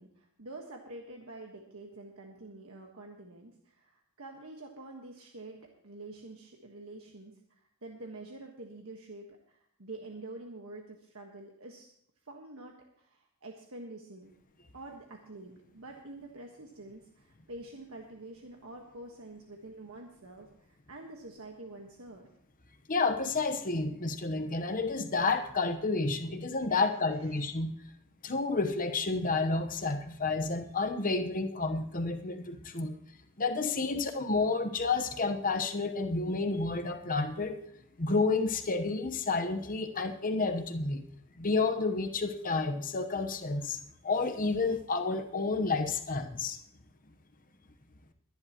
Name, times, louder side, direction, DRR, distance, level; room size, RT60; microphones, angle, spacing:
voice 1, 0.0-11.9 12.2-14.3 14.7-22.2 27.2-27.5, right 2 dB, 70° right, 1 dB, 1.5 m, -47 dB
voice 2, 22.9-27.7 28.2-33.0 33.4-37.6 38.0-41.0 41.4-43.8 44.0-46.6, left 3 dB, 40° left, 7 dB, 1.1 m, -30 dB
22.0 x 10.5 x 3.0 m, 0.71 s
head